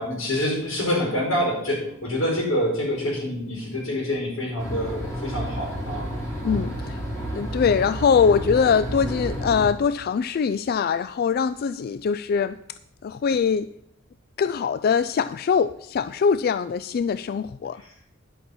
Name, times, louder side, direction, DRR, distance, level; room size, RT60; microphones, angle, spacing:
voice 1, 0.0-6.1, left 1 dB, 85° left, 0 dB, 4.9 m, -26 dB
sound 1, 4.6-9.7, equal, 10° left, 3.2 m, -31 dB
voice 2, 6.4-7.0 7.3-12.6 13.0-13.7 14.4-17.8, left 6 dB, 50° left, 14 dB, 0.3 m, -22 dB
11.5 x 5.9 x 7.0 m, 0.74 s
head